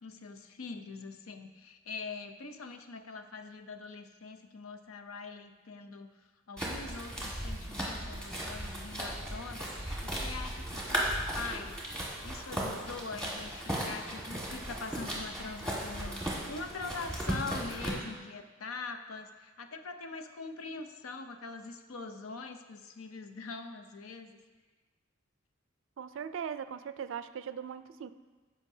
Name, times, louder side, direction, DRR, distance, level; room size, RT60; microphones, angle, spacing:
voice 1, 0.0-6.1 6.5-9.7 10.0-11.8 12.2-24.4, left 4 dB, 90° left, 6 dB, 0.6 m, -43 dB
sound 1, 6.6-17.9, right 1 dB, 5° left, 1.5 m, -36 dB
voice 2, 26.0-28.1, right 7 dB, 65° right, 13 dB, 0.3 m, -39 dB
15.0 x 5.2 x 2.7 m, 1.3 s
head